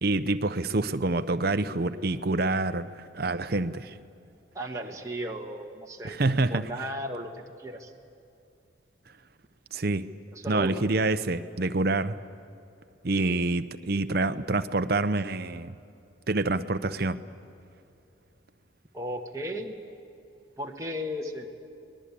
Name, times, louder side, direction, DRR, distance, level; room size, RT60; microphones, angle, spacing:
voice 1, 0.0-3.9 6.0-6.7 9.7-10.1 10.5-12.2 13.0-15.8 16.3-17.2, right 2 dB, 55° right, 10 dB, 0.7 m, -27 dB
voice 2, 4.5-6.2 6.5-7.3 7.6-7.9 10.3-10.8 18.9-19.8 20.6-21.5, equal, 15° right, 0 dB, 1.3 m, -35 dB
25.5 x 20.0 x 8.5 m, 2.7 s
head